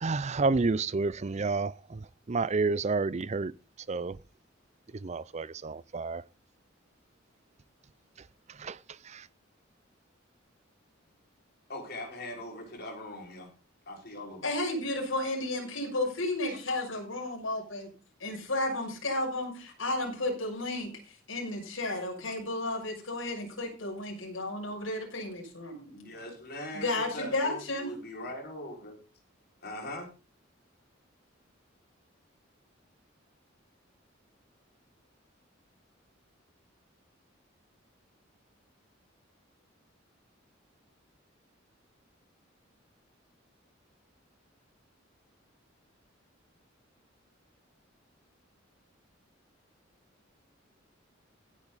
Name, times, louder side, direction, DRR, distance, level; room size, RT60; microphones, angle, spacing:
voice 1, 0.0-3.5 3.9-4.2 5.0-6.2 8.6-8.8 9.1-9.2, right 3 dB, 35° right, 0.5 m, -30 dB
voice 2, 11.7-13.4 13.9-14.5 25.9-26.9 27.1-29.0 29.6-30.1, left 1 dB, 55° left, 5.6 m, -41 dB
voice 3, 14.4-17.9 18.2-25.9 26.7-27.9, left 2 dB, 85° left, 7.0 m, -33 dB
16.0 x 10.0 x 4.1 m
head